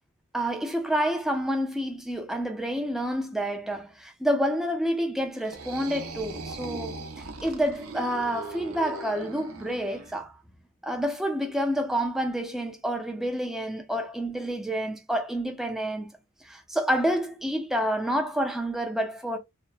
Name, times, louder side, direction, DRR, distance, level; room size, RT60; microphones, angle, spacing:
voice 1, 0.3-7.0 7.4-10.4 10.8-16.1 16.4-19.4, equal, ahead, 0.5 m, -28 dB
sound 1, 5.3-10.1, right 3 dB, 75° right, 0.6 m, -39 dB
2.8 x 2.1 x 2.3 m
head